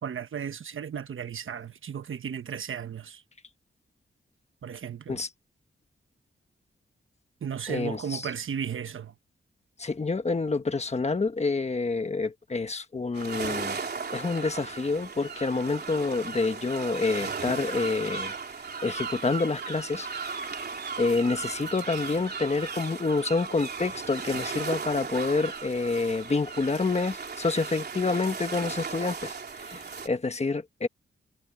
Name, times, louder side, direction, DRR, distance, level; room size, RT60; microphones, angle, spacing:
voice 1, 0.0-3.2 4.6-5.2 7.4-9.1, right 7 dB, 70° right, 1.2 m, -35 dB
voice 2, 7.7-8.3 9.8-13.8 14.1-18.3 18.8-20.4 21.0-29.3 29.7-30.9, left 3 dB, 30° left, 1.4 m, -28 dB
sound 1, 13.1-30.1, right 5 dB, 50° right, 3.3 m, -36 dB
wide cardioid pair, 140°, 21 cm